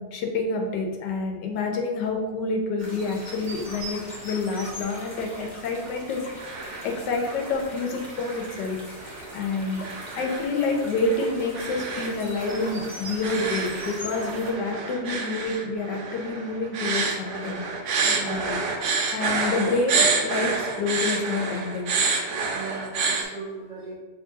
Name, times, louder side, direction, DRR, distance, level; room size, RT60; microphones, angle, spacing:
voice 1, 0.0-8.8 9.3-9.9 10.1-17.9 18.2-18.6 19.1-22.0, left 3 dB, 80° left, 2 dB, 1.3 m, -28 dB
sound 1, 2.8-14.5, equal, 10° right, 1.2 m, -40 dB
sound 2, 6.1-6.9 7.3-7.7 8.2-23.2, right 4 dB, 80° right, 1.3 m, -29 dB
voice 2, 18.0-18.5 22.5-23.9, right 4 dB, 35° right, -7 dB, 0.6 m, -38 dB
6.1 x 2.7 x 2.7 m, 1.3 s
omnidirectional pair, 1.9 m